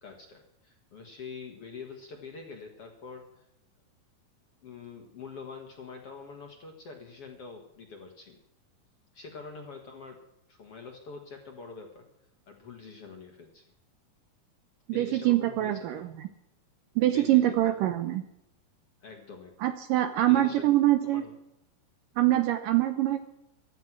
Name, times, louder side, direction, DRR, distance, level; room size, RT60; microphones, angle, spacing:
voice 1, 0.0-3.5 4.6-8.4 9.1-10.2 10.5-12.1 12.5-13.7 14.9-16.1 17.1-17.9 19.0-19.8 20.3-20.7 21.0-21.3, left 5 dB, 55° left, 3 dB, 1.8 m, -45 dB
voice 2, 14.9-16.1 17.0-18.2 19.6-21.2 22.2-23.2, right 14 dB, 75° right, 9 dB, 2.1 m, -24 dB
16.0 x 12.5 x 6.1 m, 0.84 s
omnidirectional pair, 4.5 m